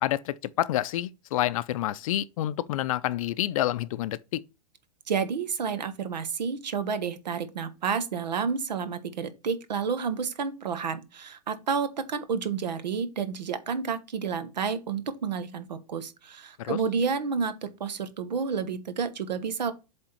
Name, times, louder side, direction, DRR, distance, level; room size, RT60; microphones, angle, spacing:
voice 1, 0.0-4.4 16.6-16.8, left 14 dB, 55° left, 0.5 m, -28 dB
voice 2, 5.1-19.7, right 6 dB, 85° right, 1.3 m, -30 dB
7.7 x 3.6 x 4.4 m
hypercardioid pair, 140°, 21 cm